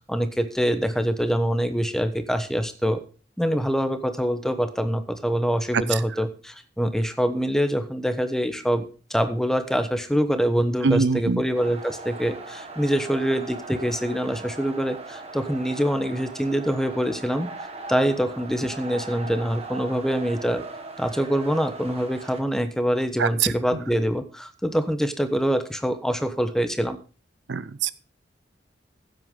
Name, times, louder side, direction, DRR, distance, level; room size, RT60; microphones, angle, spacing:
voice 1, 0.1-3.0 3.4-17.5 17.9-20.6 21.0-27.0, equal, 5° left, 9 dB, 1.0 m, -25 dB
voice 2, 10.8-11.4 23.2-23.3 27.5-27.9, right 4 dB, 70° right, 17 dB, 0.6 m, -22 dB
sound 1, 11.5-22.4, right 3 dB, 35° right, 1.5 m, -39 dB
15.0 x 8.0 x 3.8 m, 0.37 s
head